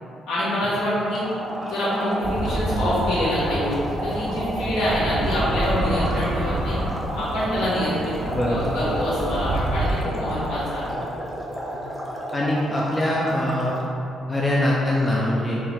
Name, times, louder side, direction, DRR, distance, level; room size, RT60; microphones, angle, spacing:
voice 1, 0.3-1.2 1.7-6.8 7.2-8.1 8.4-10.9, equal, 70° left, -11 dB, 1.5 m, -25 dB
sound 1, 1.0-13.9, equal, 5° left, 1.0 m, -32 dB
sound 2, 2.2-10.0, right 1 dB, 40° right, 0.4 m, -28 dB
voice 2, 8.2-8.7 9.2-9.3 12.3-13.7 14.3-15.6, left 1 dB, 25° left, -4 dB, 0.5 m, -23 dB
4.5 x 2.6 x 3.4 m, 2.8 s
figure-of-eight pair, 40°, 0 cm